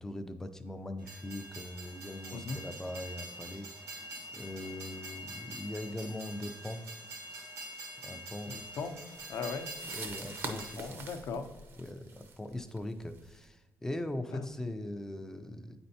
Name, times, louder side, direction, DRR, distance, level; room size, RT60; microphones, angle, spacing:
voice 1, 0.0-4.0 4.3-6.8 8.0-8.7 9.9-10.9 11.8-15.8, left 1 dB, 10° left, 8 dB, 0.4 m, -41 dB
Train, 1.0-10.8, right 1 dB, 85° right, 1.3 m, -45 dB
voice 2, 2.3-2.6 8.4-9.0 9.3-9.7 10.8-11.6 14.3-14.5, left 5 dB, 60° left, 7 dB, 0.6 m, -38 dB
sound 1, 8.5-13.4, right 3 dB, 45° right, 0.6 m, -46 dB
8.6 x 4.3 x 2.7 m, 1.1 s
cardioid pair, 145°, 6 cm